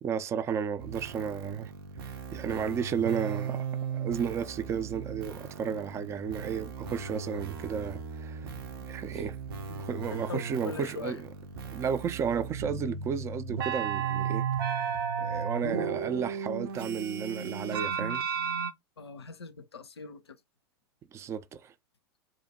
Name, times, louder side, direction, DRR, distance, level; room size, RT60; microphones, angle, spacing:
voice 1, 0.0-1.7 2.0-3.7 3.9-8.5 8.9-9.4 9.7-11.2 11.7-18.2 21.1-21.7, right 7 dB, 20° right, 0.3 m, -33 dB
sound 1, 0.8-18.7, right 6 dB, 60° right, 0.6 m, -35 dB
voice 2, 10.1-11.2 19.0-20.4, left 4 dB, 85° left, 0.4 m, -41 dB
2.5 x 2.1 x 2.8 m
figure-of-eight pair, 90°, 13 cm